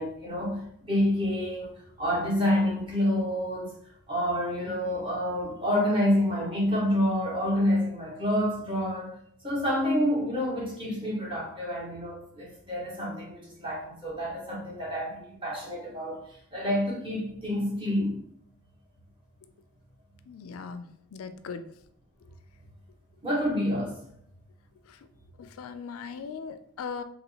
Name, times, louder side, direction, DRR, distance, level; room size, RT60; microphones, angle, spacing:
voice 1, 0.0-3.7 4.1-9.1 9.4-16.2 16.5-18.2 23.2-23.9, equal, 25° right, -5 dB, 1.3 m, -28 dB
voice 2, 20.3-20.9 21.1-21.6 25.4-27.0, left 5 dB, 70° left, 10 dB, 0.3 m, -38 dB
3.0 x 2.9 x 4.1 m, 0.67 s
head